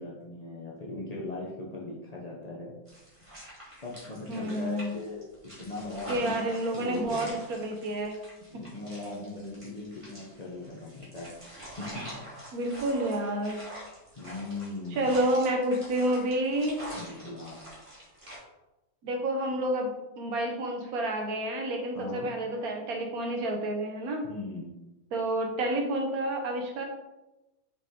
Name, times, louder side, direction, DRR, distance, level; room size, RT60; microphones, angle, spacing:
voice 1, 0.0-2.7 3.8-5.3 5.6-6.4 6.7-7.2 8.5-11.3 11.8-12.1 14.2-15.2 16.9-17.6 21.9-22.3 24.2-24.7, left 2 dB, 85° left, -4 dB, 0.3 m, -39 dB
sound 1, 2.9-18.4, right 1 dB, 15° right, 1.7 m, -45 dB
voice 2, 4.3-4.9 6.1-8.1 8.5-8.6 12.5-13.6 14.9-16.8 19.0-24.3 25.1-26.8, right 1 dB, 55° right, 3 dB, 1.2 m, -29 dB
5.4 x 5.0 x 3.7 m, 1.0 s
omnidirectional pair, 2.2 m